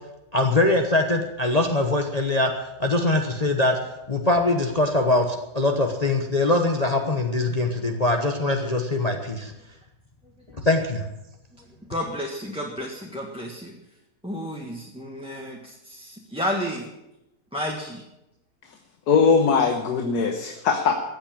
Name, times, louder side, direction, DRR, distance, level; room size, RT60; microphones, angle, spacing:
voice 1, 0.3-3.8 4.1-9.5 10.6-11.1, left 2 dB, 25° left, 3 dB, 1.1 m, -22 dB
voice 2, 11.6-13.7 14.2-16.9 17.5-18.0, equal, 5° right, -1 dB, 1.5 m, -32 dB
voice 3, 19.1-20.9, left 5 dB, 80° left, 5 dB, 1.7 m, -20 dB
14.5 x 8.8 x 8.7 m, 0.90 s
omnidirectional pair, 1.7 m